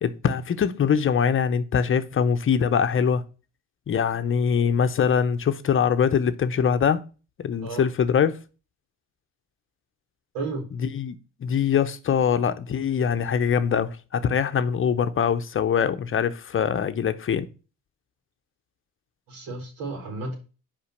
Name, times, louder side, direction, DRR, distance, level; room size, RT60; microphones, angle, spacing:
voice 1, 0.0-3.2 3.9-7.0 7.4-8.4 10.8-11.1 11.4-17.4, left 7 dB, 40° left, 0.8 m, -23 dB
voice 2, 10.3-10.7 19.3-20.4, right 3 dB, 80° right, 4.0 m, -32 dB
5.7 x 5.2 x 6.4 m
cardioid pair, 100°, 34 cm